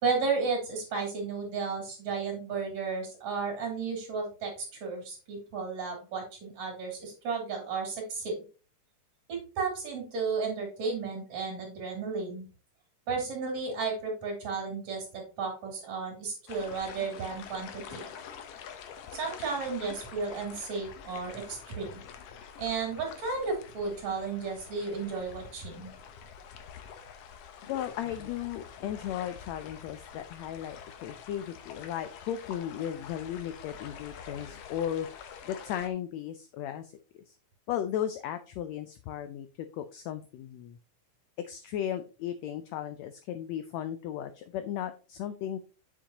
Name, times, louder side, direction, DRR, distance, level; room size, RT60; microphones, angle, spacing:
voice 1, 0.0-4.5 4.8-8.4 9.3-12.5 13.1-18.0 19.1-22.0 22.6-25.9, right 4 dB, 60° right, 1 dB, 4.0 m, -33 dB
sound 1, 16.5-35.9, left 7 dB, 65° left, 1.6 m, -46 dB
voice 2, 27.7-35.1 35.4-36.9 37.3-37.4 37.7-39.5 39.7-40.8 41.4-45.6, left 10 dB, 90° left, 10 dB, 1.5 m, -35 dB
7.4 x 7.0 x 2.9 m, 0.35 s
omnidirectional pair, 3.7 m